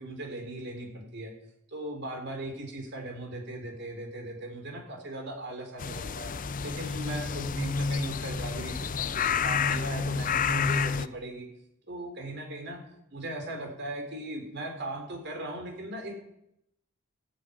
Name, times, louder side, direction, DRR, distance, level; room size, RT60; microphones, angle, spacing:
voice 1, 0.0-1.3 1.7-6.3 6.6-11.5 11.9-12.8 13.1-16.2, right 1 dB, 55° right, 3 dB, 3.9 m, -38 dB
sound 1, 5.8-11.1, left 5 dB, 40° left, 0.5 m, -29 dB
14.0 x 8.7 x 9.4 m, 0.79 s
head